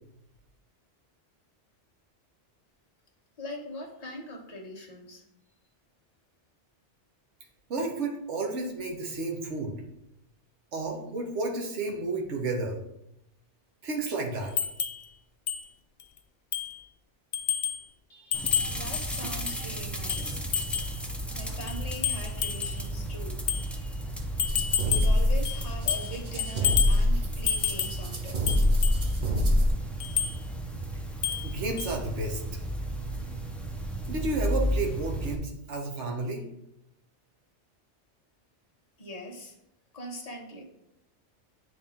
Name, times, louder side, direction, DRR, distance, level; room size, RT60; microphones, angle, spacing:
voice 1, 3.4-5.2 18.1-20.4 21.4-24.1 24.8-28.4 29.5-29.6 39.0-39.6 39.9-40.6, equal, 35° left, 0 dB, 1.2 m, -42 dB
voice 2, 7.7-9.8 10.7-12.8 13.8-14.5 31.4-32.4 34.1-36.4, right 3 dB, 75° right, 1 dB, 1.4 m, -31 dB
sound 1, 14.6-15.0 15.5-15.6 16.0-16.1 16.5-16.8 17.3-17.8 18.3-19.6 20.1-21.0 21.7-22.8 23.5-23.7 24.4-25.2 25.4-26.1 26.4-27.0 27.5-28.0 28.5-29.0 30.0-30.4 31.2-31.5 31.8-31.9, left 8 dB, 60° left, 0.5 m, -29 dB
sound 2, 18.3-35.3, right 1 dB, ahead, 0.4 m, -34 dB
sound 3, 24.4-29.7, left 1 dB, 40° right, 0.9 m, -25 dB
9.4 x 3.5 x 3.5 m, 0.81 s
omnidirectional pair, 1.2 m